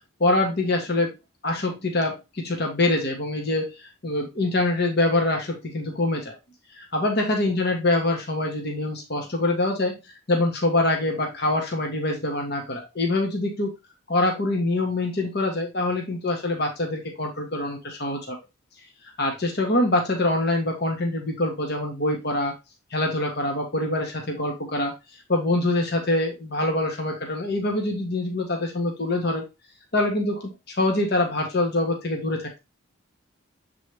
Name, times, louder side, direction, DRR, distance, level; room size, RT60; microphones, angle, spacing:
voice 1, 0.2-1.1 1.4-6.4 6.7-10.0 10.3-13.7 14.1-18.4 19.2-22.5 22.9-24.9 25.3-29.4 29.9-32.6, left 2 dB, 50° left, 2 dB, 1.4 m, -25 dB
7.4 x 4.1 x 3.3 m, 0.24 s
head